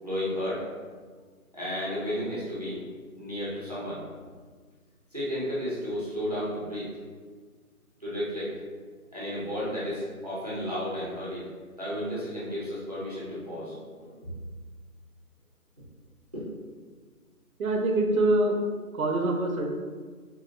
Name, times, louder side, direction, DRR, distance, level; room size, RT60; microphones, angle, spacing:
voice 1, 0.0-0.7 1.5-2.8 3.2-4.0 5.1-6.9 8.0-8.5 9.1-11.5 11.8-14.3 16.3-16.4, equal, 30° right, -9 dB, 0.6 m, -33 dB
voice 2, 17.6-18.6 18.9-19.6, right 2 dB, 70° right, 2 dB, 0.6 m, -24 dB
2.8 x 2.8 x 2.5 m, 1.5 s
figure-of-eight pair, 170°, 44 cm